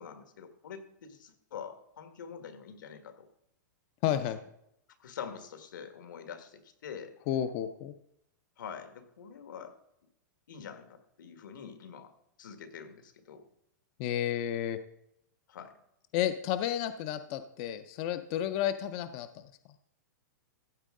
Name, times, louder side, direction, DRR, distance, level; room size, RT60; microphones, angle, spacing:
voice 1, 0.0-3.3 4.1-4.2 5.0-7.1 8.6-9.8 10.5-12.1 12.4-13.5 15.5-15.7, left 7 dB, 80° left, 8 dB, 1.6 m, -45 dB
voice 2, 4.0-4.4 7.3-7.9 14.0-14.8 16.1-19.4, left 11 dB, 20° left, 11 dB, 0.3 m, -31 dB
14.5 x 8.3 x 3.7 m, 0.78 s
supercardioid pair, 180°, 10 cm